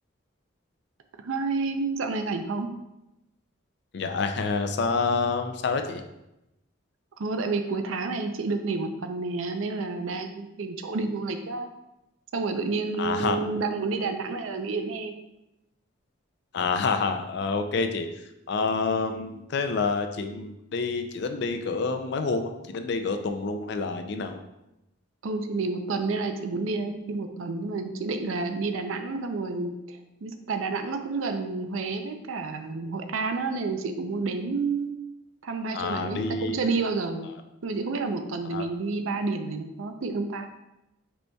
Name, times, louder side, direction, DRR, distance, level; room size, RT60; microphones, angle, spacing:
voice 1, 1.2-2.7 7.2-11.7 12.3-15.2 25.2-35.0 35.4-37.3 37.6-40.5, right 3 dB, 80° right, 7 dB, 0.5 m, -30 dB
voice 2, 3.9-6.0 13.0-13.4 16.5-24.4 35.7-36.6 38.4-38.7, left 4 dB, 55° left, 7 dB, 0.4 m, -28 dB
5.1 x 4.6 x 2.2 m, 0.91 s
head